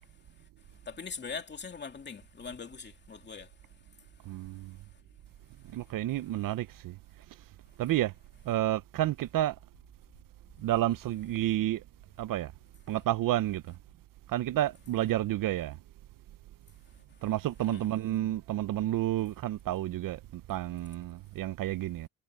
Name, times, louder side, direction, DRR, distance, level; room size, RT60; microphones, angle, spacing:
voice 1, 0.9-3.5 17.7-17.9, left 5 dB, 30° left, 2.6 m, -41 dB
voice 2, 4.3-4.8 5.7-7.0 7.8-8.1 8.5-9.6 10.6-11.8 12.2-12.5 12.9-13.8 14.3-15.8 17.2-22.1, right 13 dB, 65° right, 0.6 m, -30 dB
cardioid pair, 150°, 36 cm